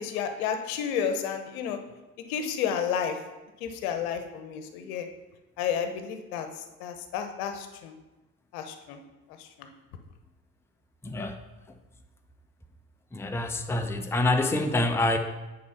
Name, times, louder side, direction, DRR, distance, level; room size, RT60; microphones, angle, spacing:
voice 1, 0.0-1.8 2.3-3.2 3.6-5.1 5.6-6.5 6.8-7.9 8.5-9.0 9.4-9.7, left 8 dB, 65° left, 7 dB, 1.0 m, -31 dB
voice 2, 11.0-11.4 13.1-15.2, left 2 dB, 5° left, 5 dB, 0.7 m, -26 dB
9.6 x 4.4 x 5.7 m, 1.1 s
figure-of-eight pair, 55°, 47 cm